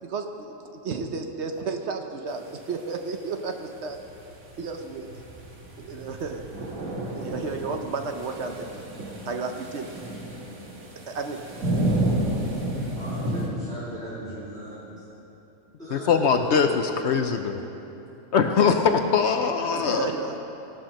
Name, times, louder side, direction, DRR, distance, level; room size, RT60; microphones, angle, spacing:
voice 1, 0.0-4.0 4.6-5.1 5.8-6.5 7.1-8.7 9.2-9.9 11.1-11.5 19.7-20.4, right 4 dB, 60° right, 5 dB, 0.9 m, -32 dB
sound 1, 3.8-13.5, right 1 dB, 75° right, 1.9 m, -31 dB
voice 2, 13.0-15.0 15.8-16.7, right 1 dB, 5° left, -12 dB, 2.6 m, -37 dB
voice 3, 15.9-16.7 17.0-17.6 18.3-20.1, left 6 dB, 65° left, 6 dB, 0.8 m, -21 dB
17.0 x 5.8 x 6.4 m, 3.0 s
omnidirectional pair, 1.5 m